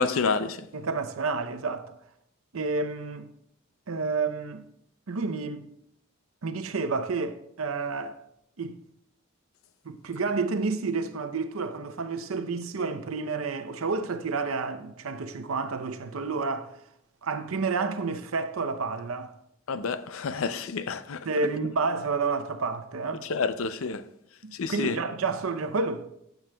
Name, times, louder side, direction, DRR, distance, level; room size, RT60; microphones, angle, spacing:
voice 1, 0.0-0.7 19.7-21.3 23.2-24.1 24.5-25.0, left 4 dB, 80° left, 0.5 m, -29 dB
voice 2, 0.7-1.9 2.5-3.3 3.9-4.7 5.1-5.7 6.4-8.2 8.6-8.8 9.8-16.7 17.2-19.3 21.3-23.2 24.4-26.1, right 4 dB, 90° right, 0.7 m, -30 dB
14.5 x 7.9 x 2.3 m
head